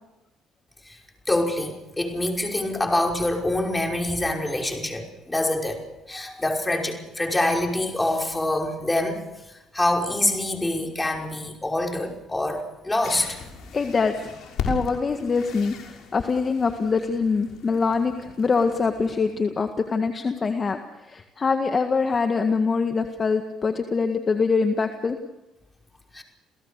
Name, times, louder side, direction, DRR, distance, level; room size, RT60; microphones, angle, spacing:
voice 1, 1.3-5.8 6.1-9.2 9.5-13.4 26.1-26.2, left 1 dB, 15° left, 1 dB, 5.5 m, -25 dB
sound 1, 13.0-19.3, left 4 dB, 70° left, 6.0 m, -37 dB
voice 2, 13.7-14.1 14.6-15.8 16.1-20.8 21.1-25.2, left 4 dB, 35° left, 6 dB, 1.8 m, -24 dB
29.0 x 17.0 x 6.8 m, 0.98 s
supercardioid pair, 80°, 0 cm